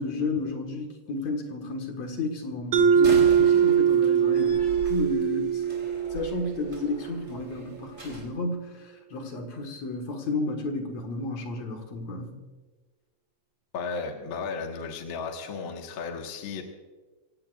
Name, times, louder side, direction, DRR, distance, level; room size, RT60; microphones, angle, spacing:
voice 1, 0.0-5.6 6.1-12.4, left 2 dB, 65° left, 3 dB, 2.8 m, -32 dB
Mallet percussion, 2.7-7.3, right 8 dB, 80° right, 2.6 m, -22 dB
Slam, 2.9-8.3, right 1 dB, 25° right, 3.7 m, -41 dB
voice 2, 13.7-16.6, left 4 dB, 45° left, 2 dB, 2.0 m, -34 dB
26.5 x 16.5 x 2.5 m, 1.3 s
omnidirectional pair, 3.5 m